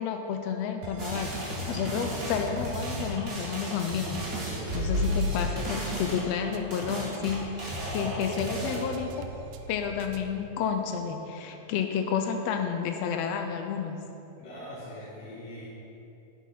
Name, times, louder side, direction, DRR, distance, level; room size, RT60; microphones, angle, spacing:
voice 1, 0.0-4.2 4.7-9.1 9.7-14.0, left 7 dB, 90° left, 5 dB, 1.4 m, -31 dB
sound 1, 0.8-10.4, right 5 dB, 80° right, 2.0 m, -43 dB
sound 2, 1.0-8.8, equal, 30° right, 2.2 m, -33 dB
voice 2, 4.4-6.0 7.8-8.9 14.4-15.7, left 1 dB, 60° left, -8 dB, 2.6 m, -41 dB
11.0 x 7.3 x 5.9 m, 2.9 s
omnidirectional pair, 3.6 m